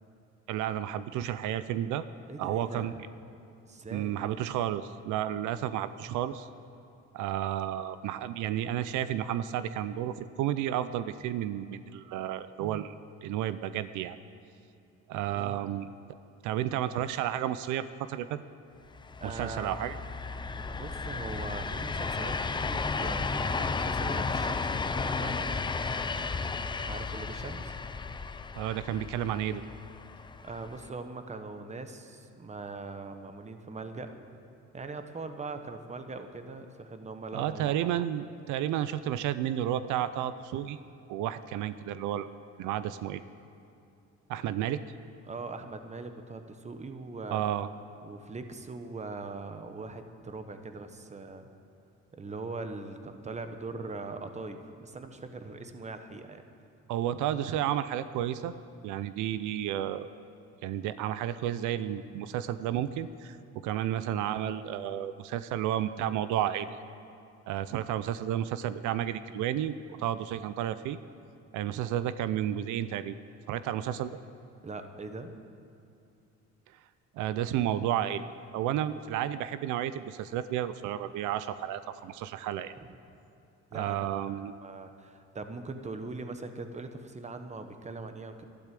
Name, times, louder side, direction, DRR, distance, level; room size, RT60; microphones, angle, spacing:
voice 1, 0.5-2.0 2.4-2.9 3.9-6.5 7.1-12.9 13.2-14.2 15.1-15.9 16.4-18.4 19.2-20.0 28.6-29.6 37.3-40.8 41.1-42.3 42.6-43.2 44.3-44.8 47.3-47.7 56.9-58.5 58.8-60.1 60.6-63.4 63.6-66.7 67.5-71.0 71.5-73.1 73.5-74.2 77.1-78.3 78.5-82.7 83.7-84.5, right 11 dB, 85° right, 13 dB, 0.6 m, -32 dB
voice 2, 2.3-3.0 3.6-4.2 15.3-15.7 19.2-19.7 20.7-25.5 26.8-27.8 30.2-34.1 34.7-37.7 45.3-47.4 48.0-51.5 52.1-56.4 74.6-75.3 83.7-84.2 84.6-88.4, right 3 dB, 25° right, 8 dB, 1.1 m, -41 dB
sound 1, 18.9-30.9, left 4 dB, 15° left, 0.5 m, -33 dB
12.5 x 12.0 x 7.6 m, 2.7 s
cardioid pair, 115°, 29 cm